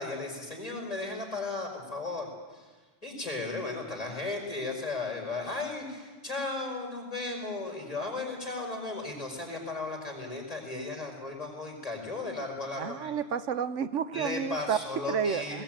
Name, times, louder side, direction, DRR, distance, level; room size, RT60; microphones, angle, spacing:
voice 1, 0.0-2.7 3.0-13.1 14.1-15.6, left 3 dB, 30° left, 0 dB, 5.4 m, -35 dB
voice 2, 12.8-14.8 15.1-15.6, right 7 dB, 90° right, 12 dB, 1.2 m, -30 dB
20.0 x 18.0 x 9.0 m, 1.4 s
omnidirectional pair, 1.2 m